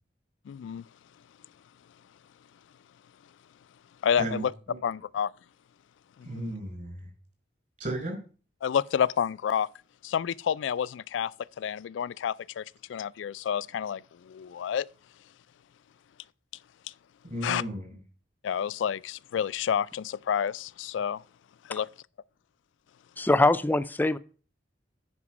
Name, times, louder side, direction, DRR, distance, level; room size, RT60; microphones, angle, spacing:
voice 1, 0.5-0.9 4.0-4.5 4.8-5.3 6.2-6.5 8.6-9.7 10.0-11.3 11.6-14.9 17.4-17.6 18.4-21.2 21.6-21.9, left 8 dB, 80° left, 0.3 m, -29 dB
voice 2, 4.2-4.8 6.2-7.1 7.8-8.2 17.3-18.0, right 1 dB, 45° right, 5.1 m, -35 dB
voice 3, 23.2-24.2, left 2 dB, 10° left, 0.4 m, -23 dB
9.8 x 5.1 x 6.0 m
head